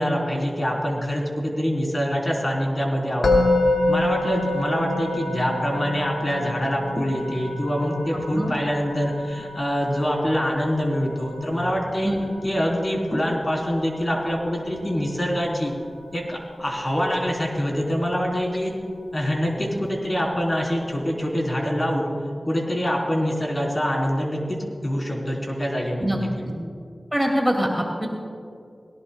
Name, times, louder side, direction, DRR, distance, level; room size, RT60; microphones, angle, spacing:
voice 1, 0.0-3.3 3.9-12.1 12.4-15.7 16.1-18.7 19.1-22.1 22.5-24.6 24.8-26.1, equal, 35° left, -1 dB, 3.7 m, -25 dB
Musical instrument, 3.2-14.3, left 2 dB, 85° left, 1.8 m, -28 dB
voice 2, 8.1-8.5 12.0-12.2 26.0-26.2 26.4-26.5 27.1-28.1, equal, 5° right, -1 dB, 2.3 m, -24 dB
21.0 x 18.0 x 2.3 m, 2.3 s
wide cardioid pair, 50°, 0 cm